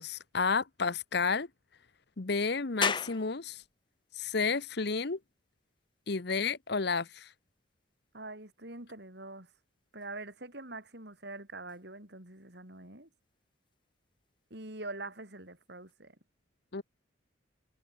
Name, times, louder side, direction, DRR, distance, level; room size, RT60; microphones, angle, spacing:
voice 1, 0.0-1.5 2.2-3.6 4.2-5.2 6.1-7.3 16.7-16.8, left 4 dB, 55° left, 0.9 m, -31 dB
sound 1, 2.8-15.9, left 5 dB, 25° left, 1.2 m, -44 dB
voice 2, 8.1-9.5 9.9-13.1 14.5-16.2, right 2 dB, 55° right, 4.9 m, -44 dB
head